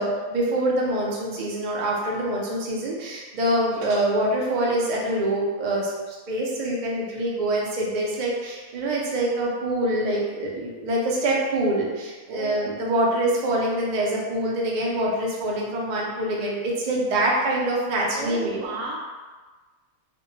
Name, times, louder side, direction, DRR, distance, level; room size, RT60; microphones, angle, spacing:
voice 1, 0.0-18.6, right 1 dB, 85° right, -3 dB, 0.4 m, -25 dB
voice 2, 12.3-13.2 18.1-19.0, right 3 dB, 70° right, -2 dB, 0.9 m, -35 dB
2.5 x 2.1 x 3.0 m, 1.3 s
omnidirectional pair, 1.5 m